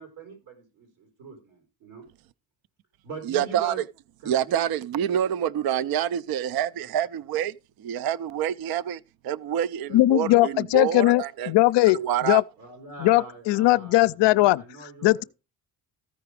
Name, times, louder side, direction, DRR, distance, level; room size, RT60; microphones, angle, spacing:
voice 1, 0.0-2.0 3.0-3.8 4.2-4.6 6.8-6.9 12.6-15.3, right 4 dB, 85° right, 3.8 m, -42 dB
voice 2, 3.2-3.7 4.3-11.5 11.9-12.4, right 10 dB, 55° right, 0.5 m, -27 dB
voice 3, 9.9-12.4 13.0-14.6 15.0-15.2, left 18 dB, 70° left, 0.5 m, -20 dB
14.5 x 4.9 x 4.7 m
supercardioid pair, 65°, 45 cm